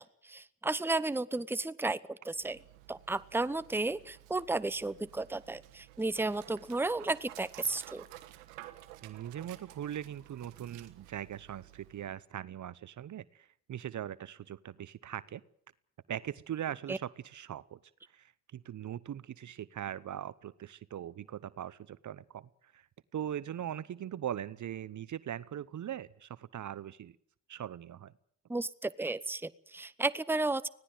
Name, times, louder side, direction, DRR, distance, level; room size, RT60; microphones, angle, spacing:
voice 1, 0.0-2.6 2.9-8.1 16.9-17.0 28.5-30.7, right 2 dB, 5° right, 16 dB, 0.9 m, -33 dB
Dog, 2.3-12.2, right 16 dB, 85° right, 1.3 m, -54 dB
voice 2, 9.0-15.4 16.1-17.8 18.1-22.9 23.1-27.2 27.5-28.1, right 10 dB, 50° right, 19 dB, 0.9 m, -40 dB
25.0 x 17.5 x 7.9 m, 0.67 s
hypercardioid pair, 50°, 39 cm